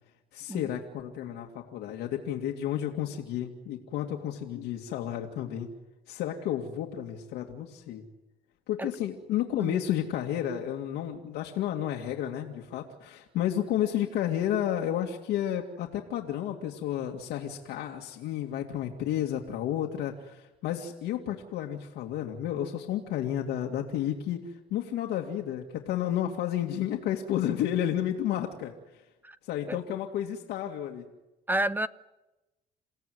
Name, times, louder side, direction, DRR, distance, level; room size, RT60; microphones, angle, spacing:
voice 1, 0.3-5.7 6.1-8.0 8.7-28.7 29.4-31.0, left 11 dB, 85° left, 2.3 m, -31 dB
voice 2, 31.5-31.9, right 1 dB, 10° right, 0.9 m, -30 dB
29.0 x 16.5 x 9.4 m
cardioid pair, 110°, 17 cm